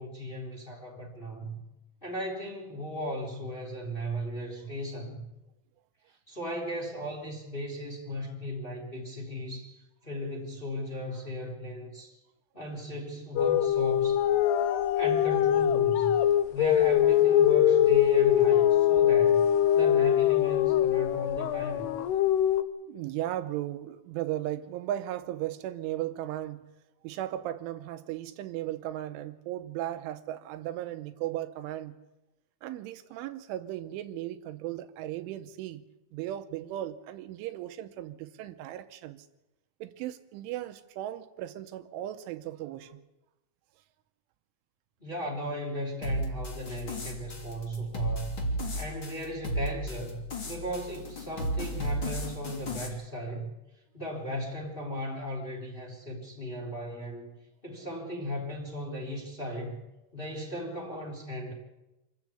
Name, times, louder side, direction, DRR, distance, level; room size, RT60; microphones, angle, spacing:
voice 1, 0.0-1.6 2.0-5.2 6.3-12.2 12.5-14.2 14.9-16.1 16.5-19.4 19.7-21.9 45.0-48.3 48.7-53.5 53.9-57.3 57.6-59.7 60.1-61.5, equal, 10° left, 3.1 m, -36 dB
sound 1, 13.4-22.6, left 11 dB, 75° left, 2.6 m, -23 dB
voice 2, 22.9-26.6 27.0-32.0 32.6-35.8 36.1-39.3 39.8-43.0, right 13 dB, 80° right, 3.2 m, -36 dB
sound 2, 46.0-52.9, equal, 30° left, 2.9 m, -34 dB
26.5 x 13.5 x 8.5 m
omnidirectional pair, 5.6 m